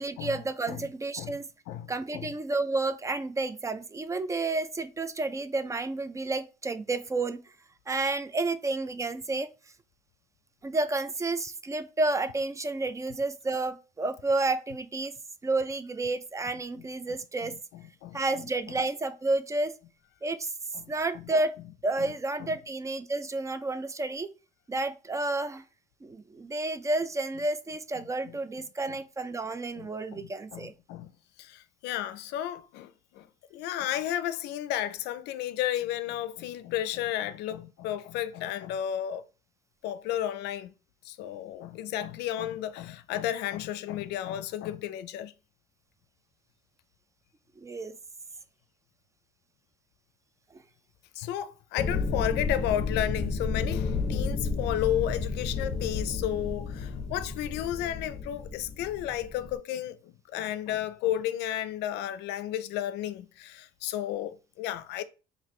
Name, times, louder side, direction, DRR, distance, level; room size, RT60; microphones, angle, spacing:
voice 1, 0.0-1.5 1.9-7.4 7.9-9.5 10.6-15.2 15.4-17.6 18.1-19.8 20.2-20.5 20.9-21.6 21.8-24.3 24.7-25.6 26.0-30.7 47.6-48.0, right 2 dB, 20° right, 0.3 m, -30 dB
voice 2, 1.7-2.3 16.8-18.2 20.7-21.2 22.0-22.1 22.4-22.5 28.3-28.4 28.9-29.0 29.8-31.1 31.4-39.2 39.8-40.7 41.0-45.3 51.2-65.0, left 12 dB, 85° left, 0.4 m, -33 dB
sound 1, 51.8-59.6, left 4 dB, 35° left, 0.6 m, -32 dB
4.1 x 2.6 x 3.1 m
cardioid pair, 110°, 17 cm